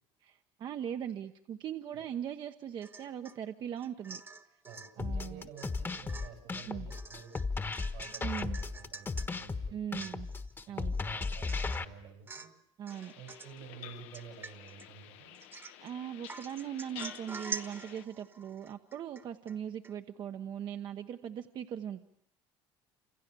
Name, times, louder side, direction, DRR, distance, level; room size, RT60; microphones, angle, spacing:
voice 1, 0.2-4.2 5.0-5.5 6.7-6.9 8.2-8.6 9.7-10.3 10.7-10.9 12.8-13.1 15.8-22.0, right 9 dB, 50° right, 6 dB, 1.1 m, -40 dB
Domestic sounds home sounds / Chink clink / Drip, 2.8-3.4 3.8-4.9 5.6-5.8 6.1-9.3 9.7-9.8 10.0-10.5 10.9-11.0 11.5-11.9 12.3-12.6 12.9-13.6 14.1-14.9 15.3-15.9 16.3-19.6 19.8-19.9, right 4 dB, 25° right, 1.4 m, -46 dB
voice 2, 4.7-7.4 7.9-10.1 10.7-12.5 13.2-15.4, right 6 dB, 90° right, 5 dB, 7.9 m, -51 dB
sound 1, 5.0-11.8, left 4 dB, 20° left, 1.4 m, -35 dB
sound 2, 12.9-18.0, left 13 dB, 80° left, 1.1 m, -51 dB
28.5 x 27.0 x 6.9 m, 0.68 s
cardioid pair, 105°, 10 cm